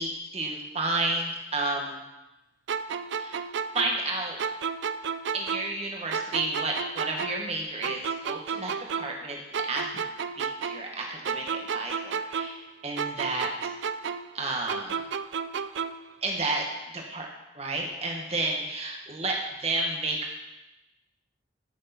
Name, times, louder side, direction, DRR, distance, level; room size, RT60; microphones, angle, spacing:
voice 1, 0.0-2.0 3.1-3.4 3.7-4.4 5.3-9.9 10.4-12.5 12.8-13.5 14.3-15.0 16.2-16.6 16.9-17.3 17.5-19.4 19.6-20.3, right 2 dB, 30° right, 0 dB, 1.7 m, -31 dB
sound 1, 2.7-5.8 6.1-9.3 9.5-12.7 13.0-16.1, right 6 dB, 70° right, 0.4 m, -32 dB
13.5 x 6.6 x 4.4 m, 0.98 s
head